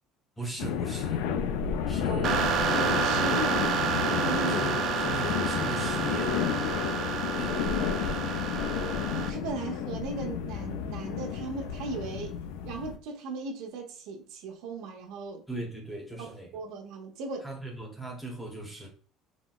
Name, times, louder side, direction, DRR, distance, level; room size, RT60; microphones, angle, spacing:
voice 1, 0.4-1.3 1.9-2.6 4.4-6.7 7.3-8.8 15.5-16.5 17.4-18.9, right 1 dB, 5° left, 0.6 m, -40 dB
sound 1, 0.6-13.0, left 8 dB, 85° left, 0.3 m, -31 dB
sound 2, 2.2-9.3, right 7 dB, 45° right, 0.4 m, -30 dB
voice 2, 2.7-3.7 4.0-4.6 9.1-12.4 12.6-15.4 16.2-17.5, right 3 dB, 70° right, 0.7 m, -37 dB
4.0 x 2.0 x 2.2 m
cardioid pair, 170°, 0 cm